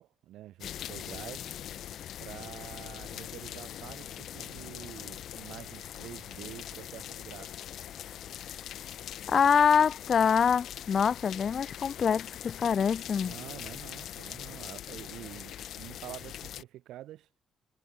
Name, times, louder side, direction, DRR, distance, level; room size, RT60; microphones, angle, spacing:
voice 1, 0.0-1.5 2.2-7.8 13.2-17.3, right 13 dB, 85° right, 5.2 m, -47 dB
sound 1, 0.6-16.6, left 11 dB, 70° left, 2.5 m, -42 dB
voice 2, 9.3-13.3, left 7 dB, 50° left, 0.5 m, -25 dB
cardioid pair, 90°, 0 cm